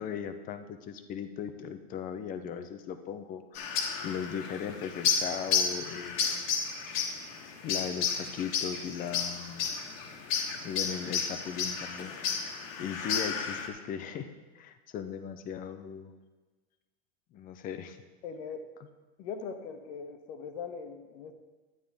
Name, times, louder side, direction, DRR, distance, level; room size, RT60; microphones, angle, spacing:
voice 1, 0.0-3.8 4.0-6.4 7.6-9.7 10.6-12.1 12.8-14.3 14.5-16.2 17.3-18.0, left 8 dB, 20° left, 9 dB, 0.5 m, -38 dB
sound 1, 3.5-13.7, left 6 dB, 80° left, 1.6 m, -32 dB
voice 2, 18.2-18.7 19.2-21.3, left 5 dB, 55° left, 7 dB, 1.2 m, -40 dB
11.5 x 9.4 x 3.5 m, 1.3 s
supercardioid pair, 150°, 39 cm